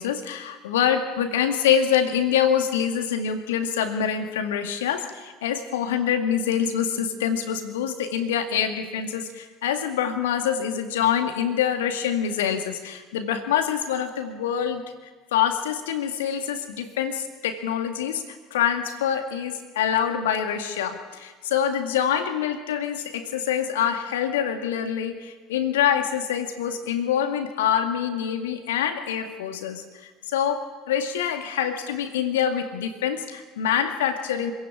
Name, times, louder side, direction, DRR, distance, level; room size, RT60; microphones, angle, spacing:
voice 1, 0.0-14.8 15.3-34.5, left 8 dB, 70° left, 7 dB, 2.1 m, -25 dB
25.5 x 16.5 x 8.8 m, 1.4 s
figure-of-eight pair, 65°, 0 cm